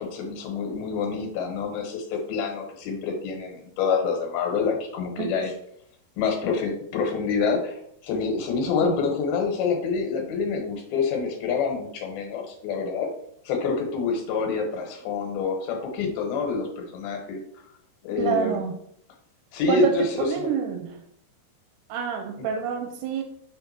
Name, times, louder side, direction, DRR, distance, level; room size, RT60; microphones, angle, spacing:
voice 1, 0.0-5.5 6.2-13.1 13.5-17.4 18.0-18.6 19.5-20.5, left 5 dB, 75° left, 2 dB, 3.0 m, -27 dB
voice 2, 18.2-18.8 19.7-21.0 21.9-23.2, right 7 dB, 90° right, 4 dB, 2.8 m, -28 dB
6.7 x 3.4 x 5.8 m, 0.69 s
omnidirectional pair, 4.6 m